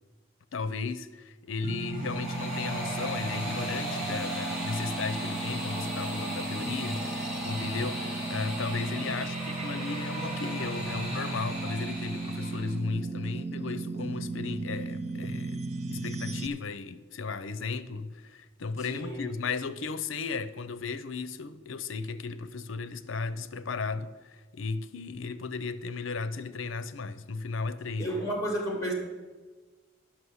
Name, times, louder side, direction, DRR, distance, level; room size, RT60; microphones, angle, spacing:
voice 1, 0.5-15.6 15.9-28.2, left 4 dB, 75° left, 0.6 m, -35 dB
sound 1, 1.6-12.8, right 1 dB, 5° right, 4.4 m, -37 dB
sound 2, 1.6-16.5, right 3 dB, 30° right, 0.5 m, -36 dB
voice 2, 18.9-19.3 28.0-28.9, equal, 15° left, 2.1 m, -32 dB
11.0 x 6.2 x 7.9 m
head